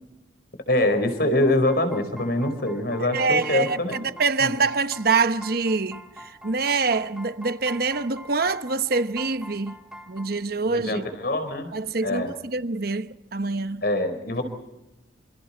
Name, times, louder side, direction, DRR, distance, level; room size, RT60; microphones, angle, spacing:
voice 1, 0.7-4.0 4.4-4.5 10.6-11.7 12.0-12.3 13.8-14.4, left 1 dB, 55° left, 4.8 m, -24 dB
sound 1, 1.2-10.3, equal, 5° right, 3.4 m, -44 dB
voice 2, 3.1-9.8 10.1-11.0 11.7-13.8, right 4 dB, 50° right, 1.0 m, -25 dB
28.5 x 27.5 x 4.4 m
head